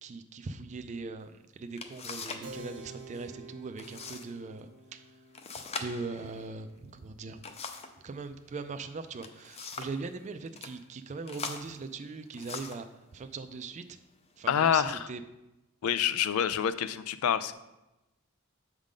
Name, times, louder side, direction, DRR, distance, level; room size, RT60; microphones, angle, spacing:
voice 1, 0.0-5.1 5.7-7.4 8.0-12.9 13.1-13.9 14.4-15.2, right 4 dB, 35° right, 9 dB, 0.4 m, -40 dB
sound 1, 1.3-1.4 1.8-2.5 2.8-3.3 3.8-4.3 4.6-4.7 5.3-8.0 9.0-10.0 10.5-10.7 11.3-12.9 13.7-13.8 14.4-14.9, left 4 dB, 30° left, 0.5 m, -42 dB
Keyboard (musical), 2.4-8.5, right 2 dB, 75° right, 1.0 m, -50 dB
voice 2, 14.5-15.0 15.8-17.5, left 8 dB, 85° left, 13 dB, 0.4 m, -27 dB
7.3 x 3.7 x 5.1 m, 0.98 s
head